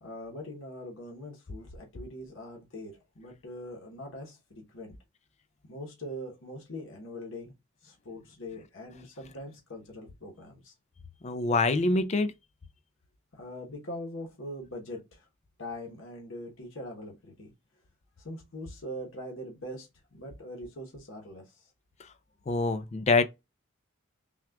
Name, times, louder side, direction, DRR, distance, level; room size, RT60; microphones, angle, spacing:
voice 1, 0.0-4.9 5.7-7.5 7.8-10.7 13.3-15.2 15.6-17.5 18.2-21.7, left 1 dB, 65° left, 1.0 m, -42 dB
voice 2, 11.2-12.3 22.5-23.2, left 3 dB, 30° left, 0.4 m, -25 dB
5.8 x 2.4 x 2.3 m
head